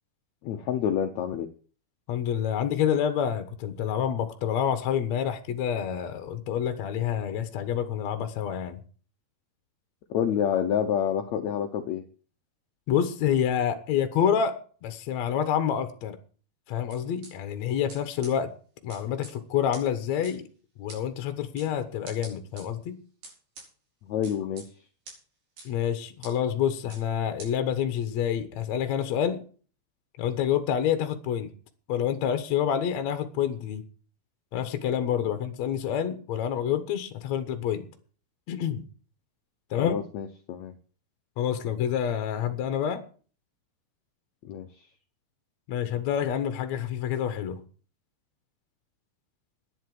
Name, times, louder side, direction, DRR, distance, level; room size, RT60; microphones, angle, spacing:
voice 1, 0.4-1.5 10.1-12.0 24.1-24.7 39.8-40.7 44.4-44.7, left 9 dB, 85° left, 1.5 m, -28 dB
voice 2, 2.1-8.8 12.9-14.6 14.8-16.2 16.7-18.5 18.8-20.5 20.8-23.0 25.7-29.4 30.2-31.5 31.9-33.8 34.5-37.9 38.5-38.8 39.7-40.0 41.4-43.0 45.7-47.6, left 9 dB, 60° left, 2.0 m, -28 dB
sound 1, 16.9-17.3 17.9-18.0 18.2-18.3 18.9-19.3 19.7-19.8 20.2-20.3 20.9-21.0 21.6-21.7 22.1-22.6 23.2-23.7 24.2-24.7 25.1-25.2 25.6-25.7 26.2-26.3 26.9-27.0 27.4-27.5, right 2 dB, 70° right, 7.2 m, -44 dB
11.5 x 10.0 x 7.6 m
omnidirectional pair, 4.5 m